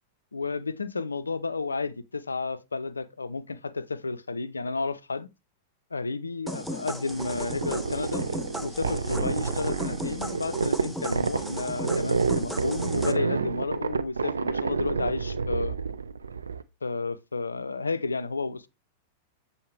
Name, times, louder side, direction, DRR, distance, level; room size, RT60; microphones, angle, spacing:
voice 1, 0.3-5.3 5.9-8.3 8.6-15.8 16.8-18.7, left 4 dB, 80° left, 0.4 m, -32 dB
sound 1, 6.5-13.1, equal, ahead, 0.7 m, -36 dB
sound 2, 7.1-16.6, right 5 dB, 80° right, 0.4 m, -29 dB
7.2 x 4.1 x 3.3 m
figure-of-eight pair, 95°, 0 cm